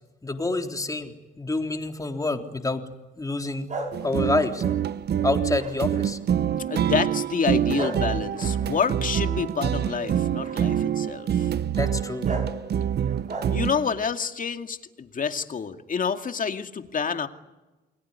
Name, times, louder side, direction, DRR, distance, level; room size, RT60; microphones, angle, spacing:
voice 1, 0.2-2.8 3.2-3.7 4.0-4.6 5.2-6.2 11.7-12.3, left 2 dB, 15° left, 4 dB, 3.5 m, -27 dB
sound 1, 3.7-6.3 6.7-7.1 7.7-10.0 10.4-10.9 11.8-11.9 12.2-12.6 13.0-13.9, right 2 dB, 40° right, 5.7 m, -37 dB
sound 2, 3.9-13.9, right 9 dB, 55° right, 0.9 m, -26 dB
voice 2, 6.7-11.5 13.5-17.3, left 6 dB, 45° left, 7 dB, 2.3 m, -28 dB
29.5 x 20.5 x 9.7 m, 1.1 s
cardioid pair, 90°, 20 cm